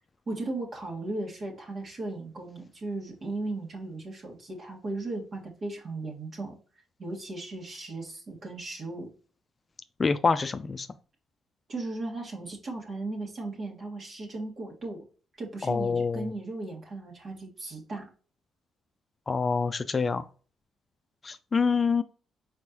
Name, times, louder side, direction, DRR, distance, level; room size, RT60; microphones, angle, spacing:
voice 1, 0.3-6.6 7.0-9.1 11.7-15.0 15.4-18.1, right 2 dB, 50° right, 1.6 m, -36 dB
voice 2, 10.0-10.9 15.6-16.3 19.3-20.2 21.2-22.0, left 5 dB, 40° left, 0.4 m, -26 dB
4.5 x 4.3 x 2.8 m
hypercardioid pair, 55°, 0 cm